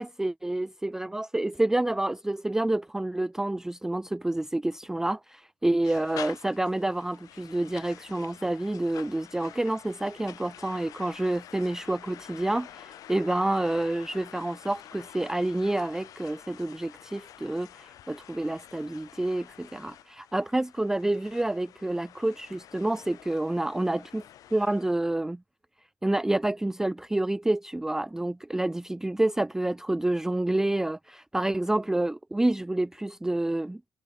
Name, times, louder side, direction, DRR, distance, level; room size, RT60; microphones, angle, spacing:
voice 1, 0.0-24.2 24.5-25.4 26.0-33.8, right 1 dB, 5° right, 0.3 m, -28 dB
sound 1, 5.8-25.0, left 12 dB, 65° left, 0.5 m, -48 dB
cardioid pair, 90°, 6 cm